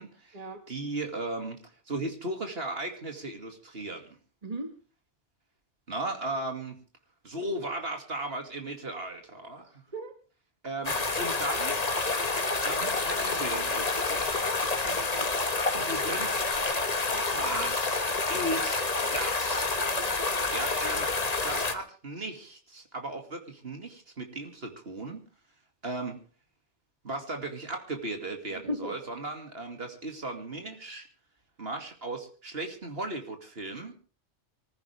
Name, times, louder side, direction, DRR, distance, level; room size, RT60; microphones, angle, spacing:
voice 1, 0.0-0.4 0.7-4.2 5.9-6.8 7.2-9.8 10.6-11.8 12.6-14.3 15.7-16.4 17.1-18.0 18.3-19.7 20.5-21.1 21.4-25.3 25.8-26.2 27.0-31.1 31.6-33.9, right 2 dB, 55° right, 4 dB, 2.6 m, -36 dB
voice 2, 4.4-4.7 9.9-10.1 14.8-15.4 28.5-29.0, right 1 dB, 35° right, 6 dB, 1.9 m, -37 dB
sound 1, 10.8-21.7, left 3 dB, 35° left, 1.5 m, -28 dB
24.5 x 15.0 x 3.4 m, 0.37 s
omnidirectional pair, 1.2 m